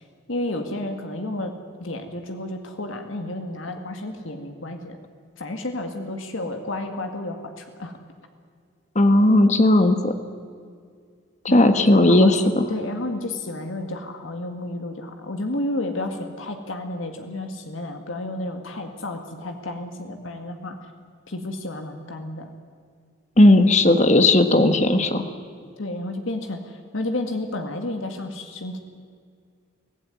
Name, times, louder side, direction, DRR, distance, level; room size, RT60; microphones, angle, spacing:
voice 1, 0.3-1.5 1.8-5.0 5.4-7.9 11.5-12.4 12.7-20.8 21.3-22.5 25.8-28.8, left 1 dB, 80° left, 6 dB, 1.9 m, -31 dB
voice 2, 8.9-10.1 11.4-12.7 23.4-25.2, left 1 dB, 35° left, 8 dB, 1.4 m, -16 dB
23.5 x 15.5 x 9.6 m, 2.2 s
head